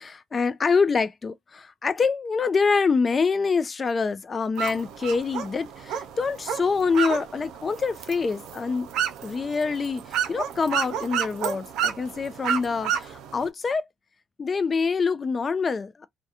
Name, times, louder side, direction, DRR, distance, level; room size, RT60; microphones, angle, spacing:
voice 1, 0.0-8.9 9.2-13.9 14.4-16.1, left 5 dB, 35° left, 0.4 m, -25 dB
sound 1, 4.6-13.5, right 8 dB, 90° right, 0.4 m, -31 dB
2.3 x 2.2 x 2.7 m
cardioid pair, 90°, 0 cm